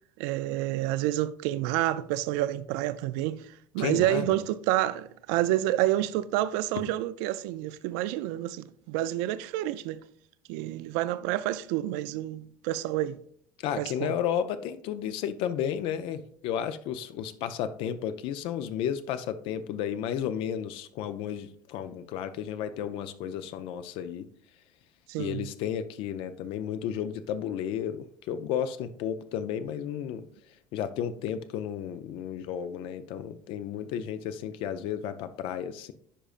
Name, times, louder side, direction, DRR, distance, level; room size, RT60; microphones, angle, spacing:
voice 1, 0.2-10.0 10.5-13.2 13.8-14.2 25.1-25.5, right 14 dB, 80° right, 0.4 m, -29 dB
voice 2, 3.8-4.4 13.6-24.3 25.2-30.2 30.7-35.9, left 9 dB, 60° left, 0.5 m, -33 dB
10.0 x 5.0 x 2.4 m
cardioid pair, 125°, 10 cm